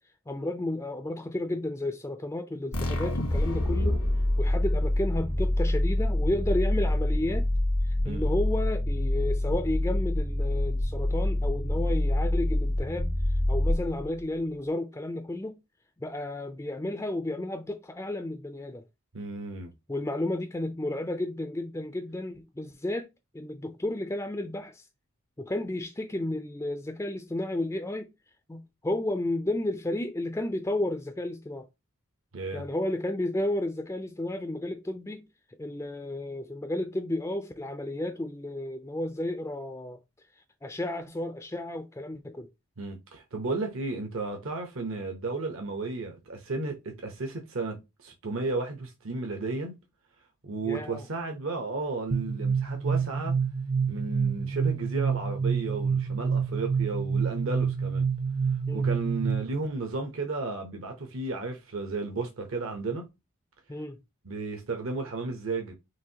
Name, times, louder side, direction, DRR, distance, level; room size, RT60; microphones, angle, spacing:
voice 1, 0.3-4.0 4.4-7.5 7.8-13.1 13.5-15.6 16.0-18.8 19.9-24.9 25.4-28.1 28.5-31.7 32.5-35.3 35.6-40.0 40.6-42.5 50.6-51.0 58.7-58.9 63.7-64.0, left 1 dB, 15° left, 0.3 m, -32 dB
sound 1, 2.7-14.2, left 1 dB, 85° left, 1.5 m, -26 dB
voice 2, 19.1-19.7 32.3-32.7 42.8-49.7 50.4-53.4 53.9-58.1 58.5-63.1 64.2-65.7, right 3 dB, 65° right, 0.9 m, -33 dB
sound 2, 52.1-59.7, right 6 dB, 45° right, 0.5 m, -28 dB
6.0 x 2.6 x 2.8 m
head